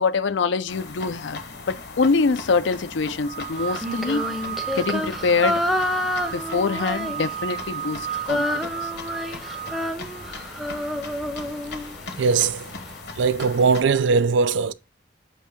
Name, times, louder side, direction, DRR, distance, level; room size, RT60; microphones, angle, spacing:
voice 1, 0.0-1.4 1.7-4.3 4.7-5.6 6.3-8.9, left 4 dB, 80° left, 0.5 m, -24 dB
sound 1, 0.7-13.8, left 3 dB, 60° left, 1.0 m, -39 dB
sound 2, 3.2-11.0, right 11 dB, 40° right, 0.7 m, -34 dB
Female singing, 3.7-7.6 7.9-12.2, left 1 dB, ahead, 0.6 m, -28 dB
voice 2, 12.2-12.7 13.2-14.7, right 5 dB, 80° right, 0.4 m, -20 dB
7.4 x 2.7 x 5.0 m
head